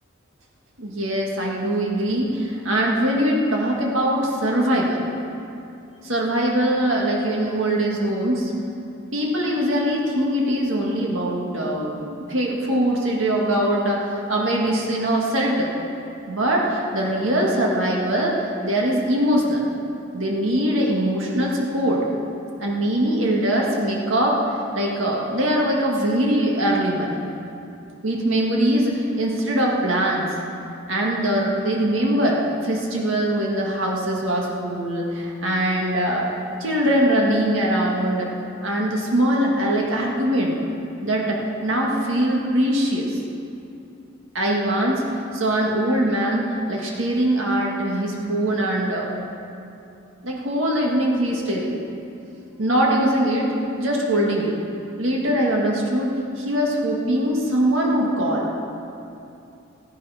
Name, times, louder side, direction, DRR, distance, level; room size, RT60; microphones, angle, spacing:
voice 1, 0.8-5.0 6.0-8.5 9.1-15.7 16.3-19.6 20.1-22.0 22.6-27.3 28.0-30.3 30.9-36.3 36.6-38.3 38.6-40.6 41.0-43.2 44.3-45.0 45.3-49.1 50.2-51.8 52.6-54.6 55.0-58.5, right 1 dB, 85° right, -2 dB, 1.8 m, -22 dB
15.0 x 10.5 x 5.7 m, 2.7 s
head